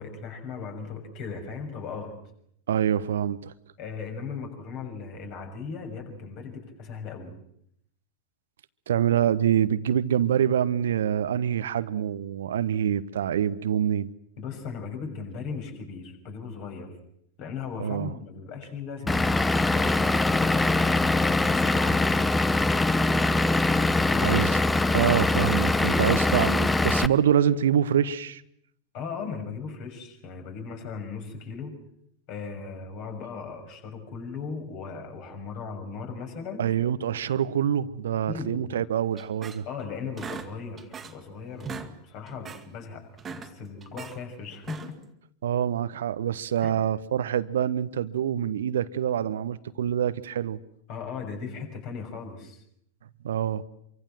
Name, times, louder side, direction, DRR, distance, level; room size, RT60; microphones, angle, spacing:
voice 1, 0.0-2.2 3.8-7.3 14.4-16.9 17.4-22.1 23.9-24.4 25.9-26.2 28.9-31.7 32.3-36.7 38.3-38.8 39.6-45.0 46.6-46.7 50.9-52.6, left 5 dB, 40° left, 6.6 m, -37 dB
voice 2, 2.7-3.5 8.9-14.1 17.8-18.1 24.2-24.5 24.9-28.4 36.6-39.6 45.4-50.6 53.2-53.6, right 9 dB, 60° right, 1.0 m, -25 dB
Vehicle / Engine, 19.1-27.1, left 2 dB, 10° left, 1.0 m, -23 dB
sound 1, 39.2-39.8 40.2-41.3 41.5-41.9 42.3-42.7 43.1-44.2 44.6-45.1, right 6 dB, 20° right, 2.2 m, -40 dB
26.5 x 24.0 x 7.7 m
figure-of-eight pair, 90°, 0 cm